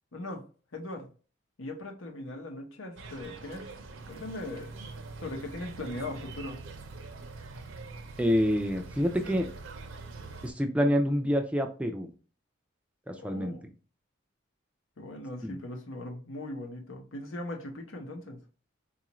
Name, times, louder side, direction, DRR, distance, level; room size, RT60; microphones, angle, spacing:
voice 1, 0.1-0.4 0.7-1.1 1.6-3.7 4.1-4.7 5.2-6.6 13.2-13.7 15.0-18.4, left 1 dB, 85° left, 2 dB, 0.9 m, -39 dB
sound 1, 3.0-10.5, right 3 dB, 70° right, 0.6 m, -44 dB
voice 2, 8.2-9.5 10.4-12.1 13.1-13.6 15.4-15.6, equal, 5° right, 5 dB, 0.3 m, -27 dB
4.0 x 2.4 x 2.9 m, 0.38 s
head